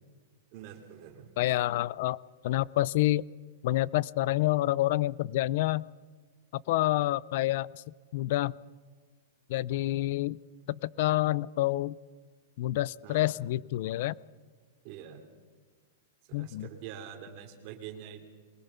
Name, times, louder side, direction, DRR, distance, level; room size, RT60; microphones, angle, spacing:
voice 1, 0.5-1.4 13.0-13.3 14.8-15.3 16.3-18.3, right 9 dB, 35° right, 6 dB, 2.9 m, -45 dB
voice 2, 1.4-2.2 2.4-3.2 3.6-5.8 6.5-7.8 8.1-8.6 9.5-10.4 10.7-12.0 12.6-14.2 16.3-16.7, left 16 dB, 50° left, 23 dB, 0.5 m, -28 dB
22.5 x 20.5 x 5.7 m, 1.5 s
supercardioid pair, 160°, 0 cm